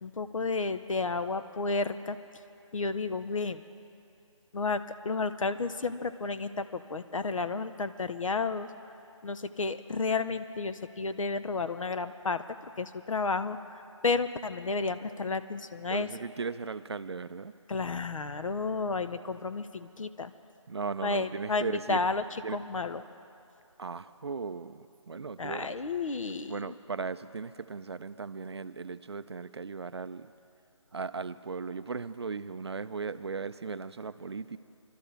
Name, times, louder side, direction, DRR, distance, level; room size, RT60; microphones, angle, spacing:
voice 1, 0.0-2.2 2.7-3.6 4.5-8.7 9.2-12.4 12.8-16.1 17.7-20.3 21.0-23.0 25.4-26.7, left 3 dB, 75° left, 11 dB, 0.7 m, -32 dB
voice 2, 15.9-17.5 20.7-22.1 22.4-22.6 23.8-25.7 26.5-30.3 30.9-34.6, right 5 dB, 55° right, 13 dB, 0.4 m, -37 dB
24.0 x 12.5 x 3.4 m, 2.6 s
figure-of-eight pair, 170°, 17 cm